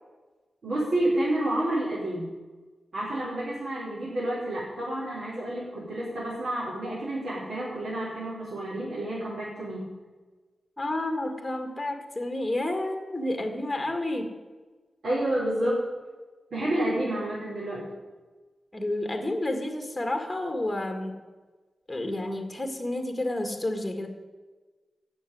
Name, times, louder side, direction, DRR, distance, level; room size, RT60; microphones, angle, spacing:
voice 1, 0.6-2.3 2.9-9.9 15.0-15.8 16.5-17.8, right 1 dB, 60° right, -9 dB, 5.2 m, -29 dB
voice 2, 10.8-14.3 18.7-21.1 21.9-24.1, left 1 dB, 10° left, 5 dB, 1.9 m, -30 dB
16.5 x 7.1 x 9.4 m, 1.3 s
wide cardioid pair, 160°, 0 cm